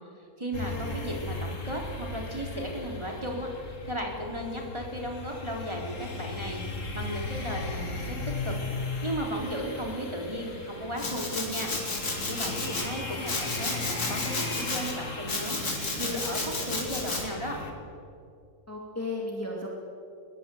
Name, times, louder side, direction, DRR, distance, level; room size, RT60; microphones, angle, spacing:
voice 1, 0.4-8.2 8.4-8.5 9.0-11.7 12.3-15.6 15.9-17.6, equal, 15° right, 0 dB, 3.8 m, -35 dB
sound 1, 0.5-17.7, left 3 dB, 55° left, 2.6 m, -37 dB
Domestic sounds home sounds, 11.0-12.9 13.3-14.9 15.3-17.2, left 2 dB, 70° left, 4.1 m, -32 dB
voice 2, 12.2-12.8 18.7-19.7, left 2 dB, 10° left, -1 dB, 2.7 m, -36 dB
22.0 x 21.0 x 7.9 m, 2.4 s
omnidirectional pair, 1.7 m